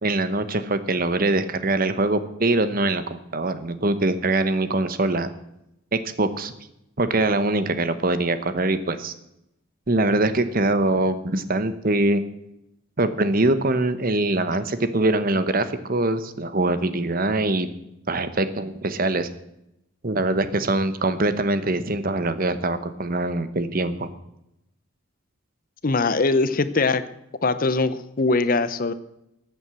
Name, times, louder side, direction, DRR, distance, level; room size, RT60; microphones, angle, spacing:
voice 1, 0.0-5.3 5.9-6.5 7.0-9.1 9.9-12.2 13.0-17.7 18.1-19.3 20.0-24.1, right 2 dB, 40° right, 11 dB, 1.0 m, -23 dB
voice 2, 25.8-27.0 27.4-28.9, left 3 dB, 40° left, 13 dB, 0.7 m, -21 dB
14.5 x 8.1 x 7.7 m, 0.84 s
head